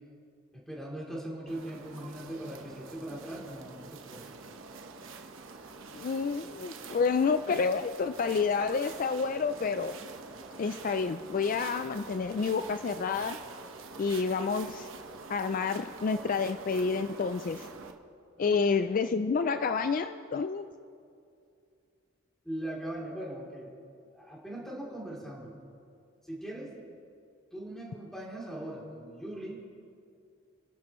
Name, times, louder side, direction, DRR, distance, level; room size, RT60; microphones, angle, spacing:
voice 1, 0.5-4.3 18.4-18.7 22.4-23.7 24.1-25.5 26.2-26.8 27.5-29.6, right 1 dB, ahead, -4 dB, 3.2 m, -40 dB
sound 1, 1.5-17.9, right 4 dB, 80° right, 1.1 m, -46 dB
voice 2, 5.9-10.0 10.6-13.4 14.0-14.9 15.3-17.7 18.4-20.7, left 5 dB, 45° left, 10 dB, 0.3 m, -29 dB
29.5 x 11.5 x 3.1 m, 2.5 s
head